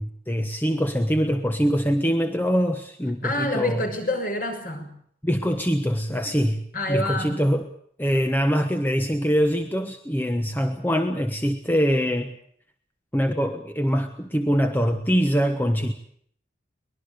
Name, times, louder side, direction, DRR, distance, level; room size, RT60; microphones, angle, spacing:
voice 1, 0.0-3.8 5.2-6.6 6.9-7.7 8.0-12.3 13.1-15.9, equal, 10° left, 6 dB, 1.2 m, -23 dB
voice 2, 3.2-4.9 6.7-7.4, left 1 dB, 45° left, 4 dB, 6.2 m, -27 dB
23.5 x 21.0 x 6.8 m, 0.64 s
head